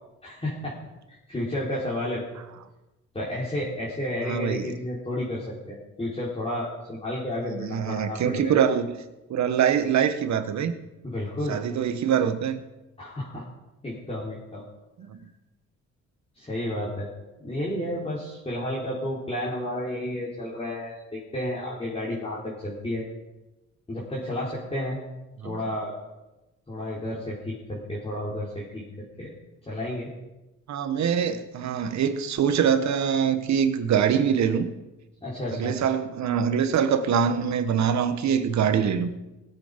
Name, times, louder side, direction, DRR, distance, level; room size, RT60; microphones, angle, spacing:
voice 1, 0.2-0.8 1.1-2.2 3.1-8.6 11.0-11.6 13.0-13.5 13.8-14.6 16.4-17.1 17.4-23.1 23.9-25.0 25.4-25.9 26.7-28.8 29.2-29.3 29.7-30.1 35.2-35.8, left 1 dB, 20° left, -7 dB, 3.6 m, -31 dB
voice 2, 4.3-4.7 7.5-9.0 9.3-10.7 11.5-12.6 15.0-15.3 25.4-25.5 30.7-34.7 35.5-39.1, right 7 dB, 65° right, 10 dB, 1.4 m, -24 dB
17.5 x 8.4 x 5.3 m, 1.0 s
cardioid pair, 90°, 30 cm